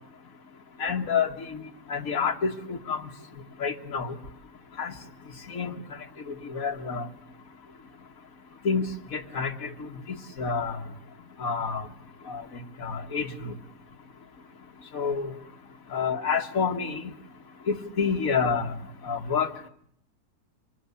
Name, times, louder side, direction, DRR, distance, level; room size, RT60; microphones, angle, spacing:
voice 1, 0.8-1.6 1.9-3.1 3.6-4.2 4.8-4.9 5.5-5.8 6.3-7.1 8.6-8.9 9.1-10.8 11.4-11.9 12.3-13.5 14.9-15.3 15.9-17.1 17.7-18.7 19.0-19.5, left 5 dB, 55° left, 5 dB, 2.0 m, -28 dB
24.5 x 23.0 x 8.5 m, 0.69 s
omnidirectional pair, 1.8 m